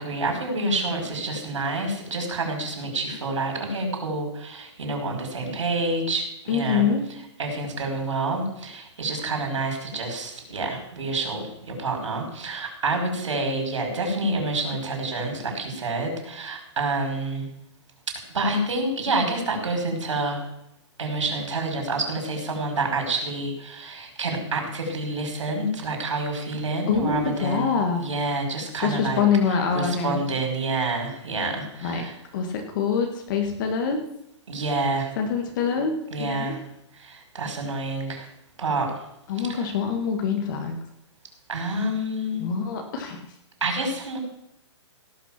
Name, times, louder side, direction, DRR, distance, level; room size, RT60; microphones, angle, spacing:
voice 1, 0.0-6.9 7.4-17.5 18.3-20.4 21.0-32.1 34.5-35.1 36.1-36.6 36.9-38.3 38.6-38.9 39.4-39.6 41.5-42.5 43.6-44.2, right 2 dB, 85° right, 2 dB, 5.2 m, -28 dB
voice 2, 6.5-7.0 26.9-28.0 28.8-30.2 31.8-32.0 32.3-34.0 35.2-35.9 36.2-36.5 39.3-40.8 42.4-43.2, left 6 dB, 45° left, 4 dB, 1.7 m, -25 dB
17.0 x 6.0 x 7.4 m, 0.81 s
hypercardioid pair, 155°, 15 cm